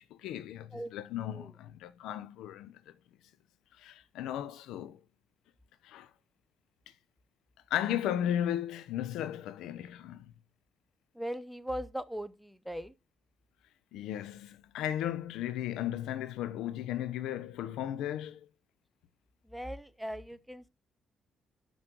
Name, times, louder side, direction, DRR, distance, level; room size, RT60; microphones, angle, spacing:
voice 1, 0.0-2.8 3.7-5.0 5.8-6.1 7.7-10.3 13.9-18.5, left 11 dB, 90° left, 0.7 m, -35 dB
voice 2, 11.1-12.9 19.5-20.7, equal, ahead, 0.7 m, -39 dB
6.4 x 6.2 x 6.7 m
cardioid pair, 90°, 0 cm